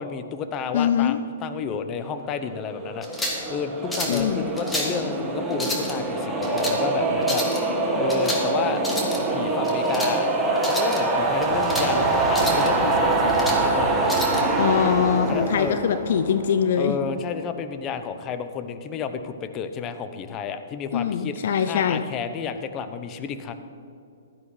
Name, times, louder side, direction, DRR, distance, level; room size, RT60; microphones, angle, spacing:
voice 1, 0.0-7.4 7.9-8.8 9.3-10.3 10.6-14.5 15.3-15.8 16.8-23.6, left 6 dB, 25° left, 9 dB, 0.8 m, -31 dB
voice 2, 0.7-1.2 4.1-4.5 14.6-17.0 20.9-22.0, left 8 dB, 60° left, 10 dB, 0.6 m, -22 dB
sound 1, 2.5-16.8, right 2 dB, 10° right, 1.6 m, -24 dB
sound 2, 3.0-3.5 3.9-4.2 4.6-5.0 5.5-5.9 6.4-6.8 7.2-7.6 8.1-8.5 8.8-9.2 9.6-10.1 10.6-11.0 11.4-11.9 12.3-12.7 13.1-13.6 14.1-14.4, left 1 dB, 5° left, 2.0 m, -30 dB
16.0 x 12.5 x 3.3 m, 2.4 s
hypercardioid pair, 125°, 0 cm